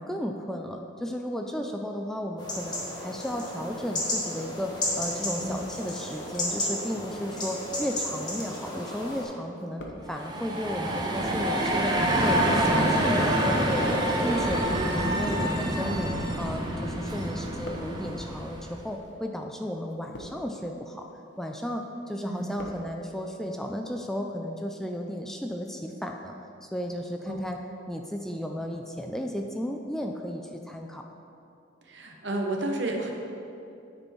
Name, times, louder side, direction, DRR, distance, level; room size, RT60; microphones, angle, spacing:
voice 1, 0.0-9.8 10.1-16.1 16.4-21.1 21.4-26.3 26.6-27.6 27.9-31.0, equal, ahead, 2 dB, 0.3 m, -34 dB
sound 1, 2.4-9.2, left 1 dB, 25° left, 1.3 m, -33 dB
sound 2, 9.5-10.5 11.3-16.9 17.2-18.2 18.9-19.2 19.8-20.6 21.1-21.5 21.9-22.9 23.1-23.2, left 1 dB, 65° left, 0.9 m, -45 dB
sound 3, 10.1-18.8, right 1 dB, 25° right, 0.7 m, -26 dB
voice 2, 31.9-33.1, right 2 dB, 70° right, 2 dB, 0.9 m, -31 dB
9.5 x 4.3 x 4.5 m, 2.6 s
head